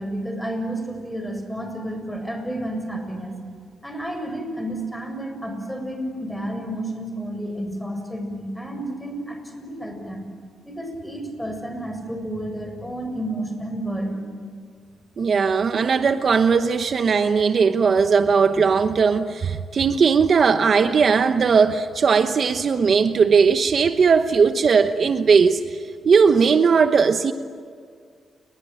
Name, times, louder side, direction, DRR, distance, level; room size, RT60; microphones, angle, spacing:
voice 1, 0.0-3.4 3.8-10.2 10.6-14.2, right 1 dB, 5° left, 5 dB, 7.1 m, -31 dB
voice 2, 15.2-27.3, right 5 dB, 55° right, 9 dB, 1.0 m, -18 dB
30.0 x 22.0 x 9.1 m, 2.1 s
cardioid pair, 85°, 0 cm